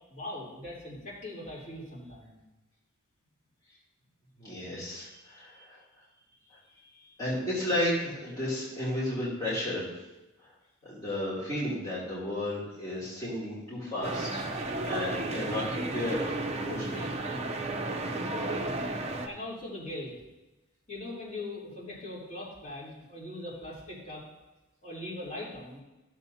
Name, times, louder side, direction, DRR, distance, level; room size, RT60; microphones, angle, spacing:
voice 1, 0.1-2.3 6.9-7.1 19.2-20.1 20.9-24.3 24.8-25.8, left 1 dB, 35° left, -7 dB, 3.3 m, -40 dB
voice 2, 4.4-5.8 7.2-9.9 10.8-17.1, left 1 dB, 15° left, -10 dB, 2.8 m, -33 dB
sound 1, 14.0-19.3, right 2 dB, 30° right, 0.7 m, -33 dB
15.0 x 7.2 x 2.8 m, 1.0 s
head